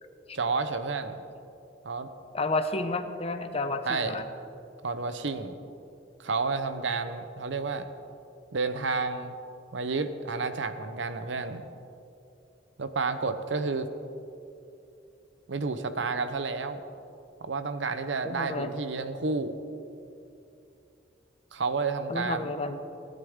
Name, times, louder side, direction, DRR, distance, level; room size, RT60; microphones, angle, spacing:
voice 1, 0.3-1.2 1.8-2.1 3.9-4.2 4.8-5.6 6.2-7.9 8.5-9.3 9.7-11.6 12.8-13.9 15.5-16.8 17.4-19.6 21.5-22.6, right 4 dB, 85° right, 10 dB, 0.8 m, -30 dB
voice 2, 2.3-4.3 18.2-18.7 22.1-22.8, left 2 dB, 35° left, 8 dB, 0.8 m, -31 dB
19.0 x 11.0 x 3.7 m, 2.7 s
head